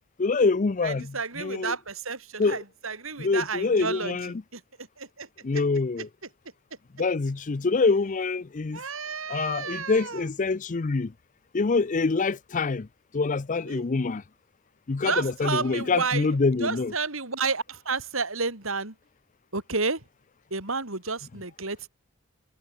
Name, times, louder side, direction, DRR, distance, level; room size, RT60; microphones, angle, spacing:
voice 1, 0.2-1.7 2.4-2.6 3.2-4.3 5.4-6.1 7.0-8.8 9.3-11.1 11.5-12.9 13.1-14.2 14.9-16.9, left 4 dB, 40° left, 0.5 m, -25 dB
voice 2, 0.8-4.2 4.5-5.6 6.0-6.1 8.7-10.3 13.7-13.9 15.0-19.0 19.5-20.0 20.5-21.9, right 4 dB, 80° right, 5.3 m, -31 dB
head